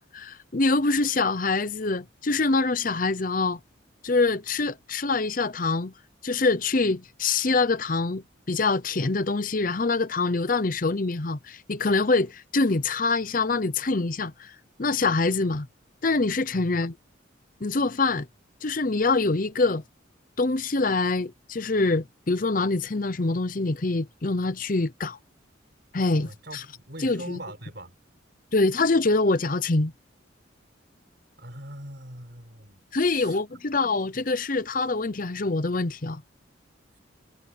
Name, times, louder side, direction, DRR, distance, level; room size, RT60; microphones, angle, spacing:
voice 1, 0.0-3.6 4.0-5.9 6.2-14.5 14.8-15.7 16.0-17.0 17.6-18.3 18.6-19.8 20.4-25.2 25.9-26.6 27.0-27.4 28.5-29.9 32.9-36.2, left 3 dB, 45° left, 0.7 m, -25 dB
voice 2, 26.1-28.0 31.4-33.6, right 1 dB, 55° right, 4.7 m, -42 dB
head